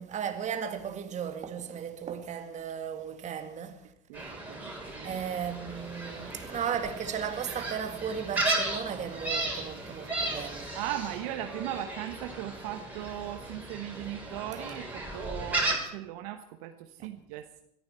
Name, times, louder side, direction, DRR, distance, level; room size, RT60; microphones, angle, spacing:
voice 1, 0.0-3.9 5.0-10.8, right 8 dB, 35° right, 2.0 m, -35 dB
Gull seagull, 4.1-15.8, right 2 dB, 10° right, 6.0 m, -35 dB
voice 2, 4.1-5.2 10.7-17.6, right 12 dB, 70° right, 1.1 m, -38 dB
22.0 x 14.5 x 4.4 m
hypercardioid pair, 90°, 20 cm